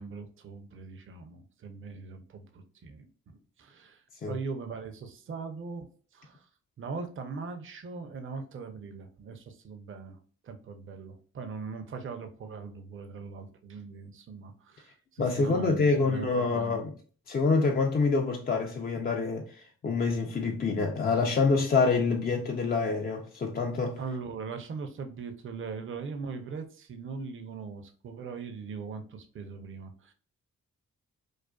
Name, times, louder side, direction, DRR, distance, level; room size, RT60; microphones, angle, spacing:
voice 1, 0.0-5.9 6.1-6.4 6.8-10.2 10.4-16.8 24.0-30.1, right 5 dB, 40° right, 0.5 m, -40 dB
voice 2, 15.2-16.9 17.3-24.0, left 4 dB, 30° left, 0.4 m, -26 dB
2.4 x 2.3 x 2.2 m
supercardioid pair, 45°, 34 cm